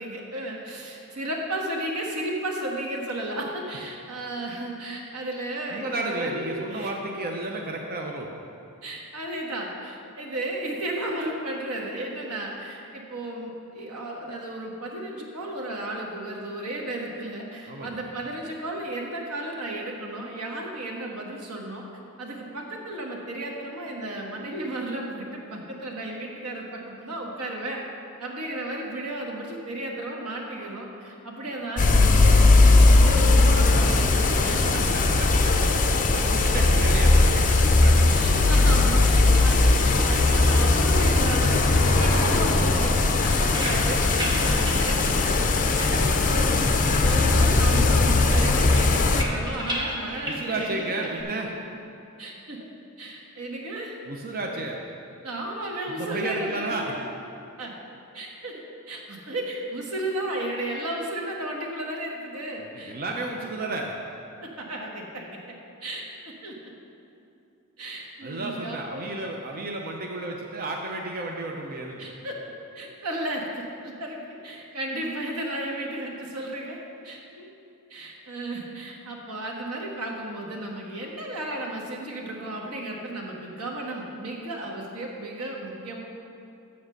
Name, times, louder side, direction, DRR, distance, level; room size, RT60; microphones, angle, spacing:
voice 1, 0.0-6.9 8.8-21.8 22.2-27.8 28.2-34.1 34.4-34.8 36.4-36.5 38.1-46.5 46.8-51.8 52.2-52.7 53.0-54.0 55.2-57.1 57.6-57.7 58.1-63.2 64.4-65.5 65.8-66.6 67.8-69.1 72.0-72.4 72.7-76.8 77.0-77.5 77.9-86.0, right 1 dB, 90° right, 0 dB, 1.4 m, -34 dB
voice 2, 5.7-8.3 17.7-18.0 34.4-35.5 36.1-38.1 50.2-51.5 54.0-54.8 56.0-57.0 62.6-63.9 68.2-72.1, right 2 dB, 40° right, 1 dB, 0.7 m, -32 dB
sound 1, 31.8-49.2, left 2 dB, 35° left, 0.6 m, -19 dB
sound 2, 43.2-46.5 46.8-47.7 48.0-51.2, equal, 20° right, 1.2 m, -36 dB
7.4 x 6.9 x 6.5 m, 2.6 s
head